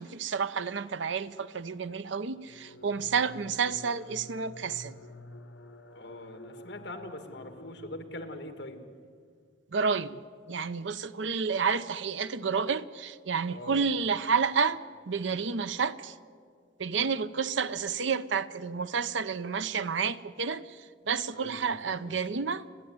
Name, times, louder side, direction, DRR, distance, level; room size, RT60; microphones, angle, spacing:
voice 1, 0.0-5.0 9.7-10.2 10.5-16.1 16.8-20.8 21.1-22.6, right 5 dB, 80° right, 0.7 m, -30 dB
sound 1, 2.3-9.2, left 1 dB, 85° left, 1.1 m, -50 dB
voice 2, 5.9-8.8 13.5-14.1 21.3-22.1, left 1 dB, 60° left, 2.0 m, -43 dB
29.5 x 11.0 x 9.5 m
head